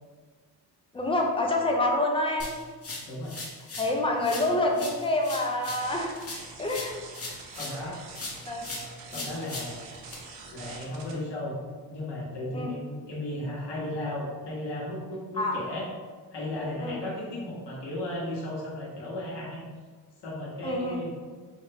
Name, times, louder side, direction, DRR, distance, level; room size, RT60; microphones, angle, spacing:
voice 1, 0.9-2.5 3.8-6.1 6.6-7.0 8.4-8.6 9.1-9.2 12.5-12.7 15.4-15.5 16.8-17.0 20.6-21.0, left 2 dB, 15° left, 1 dB, 0.3 m, -27 dB
sound 1, 2.4-3.9 4.2-7.8 8.1-10.1, left 2 dB, 35° left, 0.9 m, -39 dB
voice 2, 3.0-3.3 7.5-8.0 9.1-9.9 10.5-11.6 11.9-15.9 16.3-19.6 20.2-21.1, left 1 dB, 70° left, -5 dB, 1.2 m, -35 dB
sound 2, 5.8-11.1, right 4 dB, 80° right, 0.7 m, -45 dB
4.7 x 2.2 x 3.3 m, 1.5 s
wide cardioid pair, 150°, 43 cm